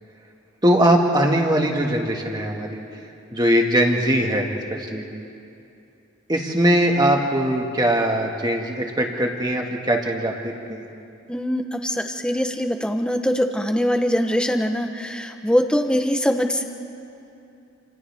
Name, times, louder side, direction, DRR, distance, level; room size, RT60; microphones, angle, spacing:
voice 1, 0.6-2.8 3.3-5.1 6.3-10.9, right 1 dB, 20° right, 1 dB, 1.8 m, -21 dB
voice 2, 11.3-16.6, equal, 5° left, 5 dB, 0.9 m, -22 dB
29.0 x 28.0 x 3.5 m, 2.7 s
head